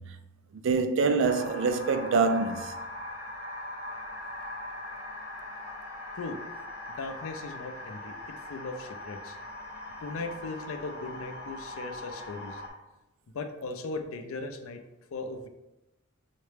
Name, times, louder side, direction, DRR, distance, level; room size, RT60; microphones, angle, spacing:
voice 1, 0.6-2.7, right 4 dB, 60° right, 0.3 m, -25 dB
sound 1, 1.2-12.7, left 1 dB, 55° left, 1.0 m, -41 dB
voice 2, 7.0-8.1 8.5-9.4 10.0-12.6 13.3-14.8 15.1-15.5, left 3 dB, 70° left, 0.4 m, -38 dB
5.6 x 2.1 x 3.2 m
head